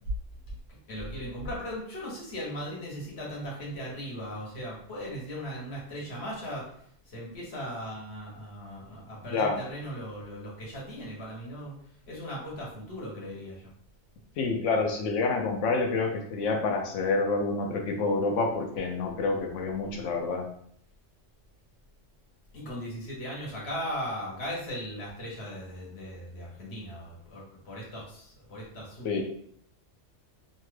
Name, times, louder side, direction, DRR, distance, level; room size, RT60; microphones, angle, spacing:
voice 1, 0.7-6.6 7.0-11.7 12.1-13.6 22.5-29.2, equal, 60° left, -4 dB, 1.2 m, -38 dB
voice 2, 14.4-20.5 29.0-29.2, left 3 dB, 80° left, 3 dB, 0.9 m, -28 dB
2.8 x 2.2 x 3.1 m, 0.66 s
omnidirectional pair, 1.3 m